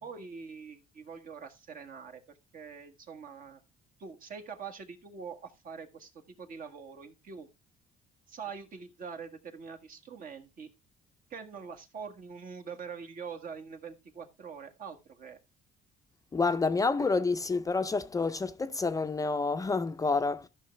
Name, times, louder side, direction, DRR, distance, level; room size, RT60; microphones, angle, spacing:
voice 1, 0.0-2.2 2.5-3.6 4.0-7.5 8.3-10.7 11.3-15.4, right 6 dB, 55° right, 1.6 m, -44 dB
voice 2, 16.3-20.5, left 4 dB, 20° left, 0.5 m, -28 dB
13.5 x 5.8 x 3.2 m
cardioid pair, 110°, 17 cm